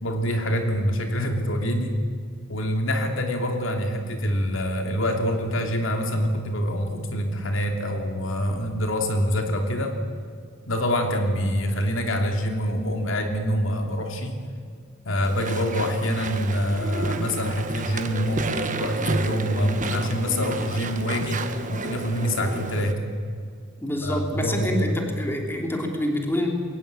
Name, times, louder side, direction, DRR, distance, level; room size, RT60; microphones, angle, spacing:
voice 1, 0.0-2.0 2.5-10.0 10.7-14.4 15.0-23.1 24.0-24.9, equal, 75° left, 4 dB, 3.0 m, -25 dB
Walk footsteps / Chatter / Squeak, 15.2-22.9, right 3 dB, 40° right, 1.4 m, -31 dB
voice 2, 23.8-26.5, left 1 dB, 10° left, 2 dB, 3.1 m, -27 dB
22.0 x 18.5 x 8.6 m, 2.1 s
head